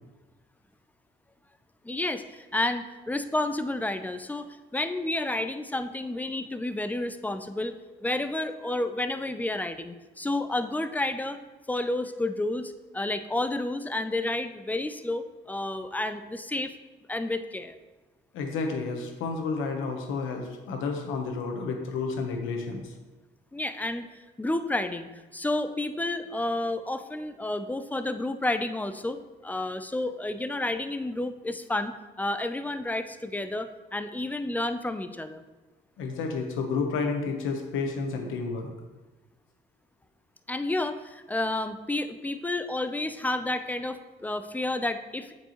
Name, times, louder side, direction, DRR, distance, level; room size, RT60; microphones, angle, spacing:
voice 1, 1.8-11.4 11.7-16.7 17.1-17.8 23.5-24.1 24.4-35.4 40.5-45.3, left 2 dB, 10° left, 9 dB, 0.4 m, -30 dB
voice 2, 18.3-22.9 36.0-38.7, left 4 dB, 90° left, 3 dB, 0.9 m, -31 dB
7.5 x 4.6 x 3.0 m, 1.2 s
cardioid pair, 90°, 20 cm